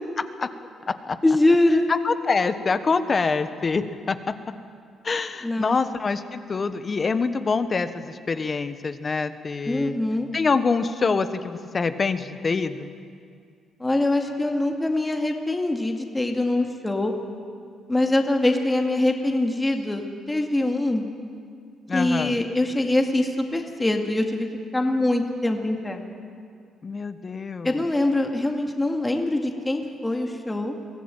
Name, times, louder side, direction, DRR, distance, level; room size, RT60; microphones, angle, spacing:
voice 1, 0.2-0.5 0.9-1.2 2.0-4.3 5.0-9.9 10.3-12.9 21.9-22.4 26.8-27.7, left 4 dB, 35° left, 11 dB, 1.2 m, -25 dB
voice 2, 1.2-1.9 5.4-5.8 9.7-10.3 13.8-17.1 17.9-21.1 21.9-24.5 24.7-26.0 27.6-30.8, left 2 dB, 15° left, 3 dB, 2.2 m, -23 dB
23.0 x 16.0 x 9.0 m, 2.3 s
cardioid pair, 90°, 0 cm